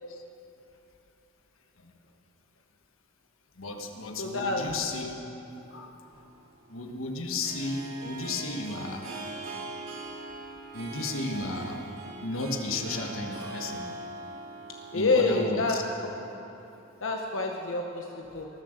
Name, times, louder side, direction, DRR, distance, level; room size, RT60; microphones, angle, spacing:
voice 1, 3.6-5.2 5.7-5.9 6.7-9.1 10.7-11.8 12.2-13.8 14.9-16.0, left 2 dB, 85° left, 3 dB, 1.4 m, -34 dB
voice 2, 4.2-4.7 14.9-16.1 17.0-18.5, left 3 dB, 70° left, 2 dB, 0.9 m, -28 dB
Harp, 6.0-16.4, right 2 dB, 90° right, 2.7 m, -42 dB
19.5 x 7.6 x 6.7 m, 3.0 s
head